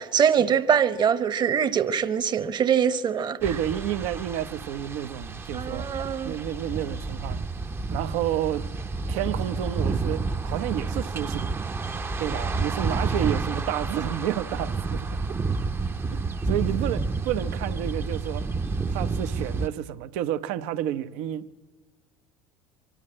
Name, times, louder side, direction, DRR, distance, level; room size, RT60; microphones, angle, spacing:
voice 1, 0.0-3.4 5.5-6.3, right 8 dB, 35° right, 1.1 m, -23 dB
sound 1, 3.4-19.7, right 3 dB, 20° right, 0.7 m, -30 dB
voice 2, 3.4-5.9 6.2-7.4 7.9-8.6 9.1-11.5 12.2-15.1 16.1-16.2 16.5-18.4 18.9-21.5, right 11 dB, 70° right, 0.8 m, -30 dB
24.0 x 12.5 x 8.7 m
hypercardioid pair, 85°, 12 cm